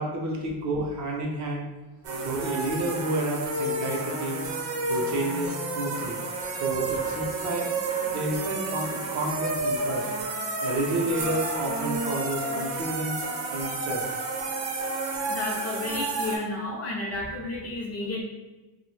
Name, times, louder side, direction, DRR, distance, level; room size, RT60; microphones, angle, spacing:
voice 1, 0.0-1.7 2.2-4.4 4.8-6.2 6.6-7.8 8.1-10.1 10.6-13.2 13.5-14.2, right 1 dB, 45° right, -1 dB, 0.5 m, -30 dB
sound 1, 2.0-16.4, right 2 dB, 85° right, 0.7 m, -31 dB
voice 2, 15.3-18.2, left 2 dB, 35° left, -2 dB, 0.5 m, -32 dB
3.0 x 2.0 x 3.1 m, 1.2 s
cardioid pair, 175°, 42 cm